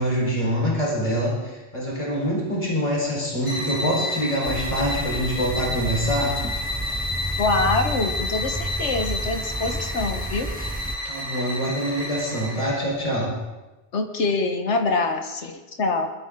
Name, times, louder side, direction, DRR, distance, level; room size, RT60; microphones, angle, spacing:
voice 1, 0.0-6.4 11.1-13.3, equal, 30° left, -3 dB, 4.3 m, -25 dB
sound 1, 3.4-12.8, left 2 dB, 65° left, 6.5 m, -31 dB
sound 2, 4.4-11.0, right 1 dB, 10° right, 0.4 m, -31 dB
voice 2, 7.4-10.5 11.0-11.1 13.9-16.1, left 3 dB, 90° left, 5 dB, 1.5 m, -25 dB
21.0 x 13.0 x 3.8 m, 1.1 s
omnidirectional pair, 1.2 m